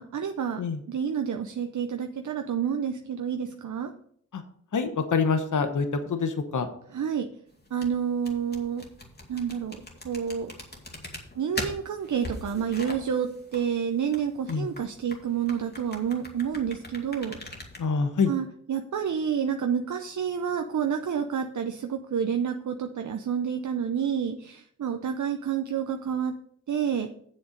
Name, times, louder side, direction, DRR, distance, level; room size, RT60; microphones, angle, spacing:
voice 1, 0.0-0.6 0.9-3.9 6.9-7.3 7.7-8.8 9.3-10.5 11.4-17.4 18.3-26.3 26.7-27.1, right 7 dB, 65° right, 6 dB, 0.7 m, -29 dB
voice 2, 4.7-6.7 14.5-14.7 17.8-18.3, left 5 dB, 65° left, 7 dB, 1.1 m, -26 dB
sound 1, 7.5-17.8, left 1 dB, 30° left, 2.2 m, -41 dB
7.8 x 7.1 x 5.1 m, 0.64 s
cardioid pair, 55°, 32 cm